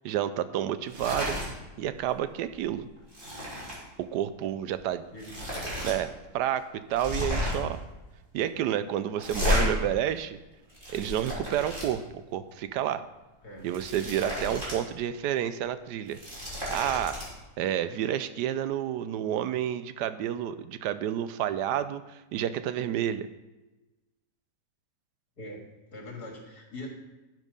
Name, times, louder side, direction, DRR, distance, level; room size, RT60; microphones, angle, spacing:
voice 1, 0.0-1.3 1.8-2.9 4.0-5.0 5.8-7.8 8.3-10.4 10.9-12.0 12.3-13.0 13.6-16.2 16.7-17.2 17.6-23.3, right 10 dB, 85° right, 13 dB, 1.2 m, -30 dB
sound 1, 0.8-1.5 1.8-2.1 2.4-3.8 4.7-4.8 5.2-5.9 6.3-6.4 6.9-7.7 9.2-9.6 10.5-11.9 13.5-14.8 15.1-15.2 16.0-17.2, left 1 dB, 30° right, 3.7 m, -32 dB
voice 2, 13.4-13.7 14.4-14.6 25.4-26.9, left 1 dB, 70° left, 0 dB, 2.6 m, -42 dB
12.0 x 6.4 x 5.2 m, 1.1 s
omnidirectional pair, 1.7 m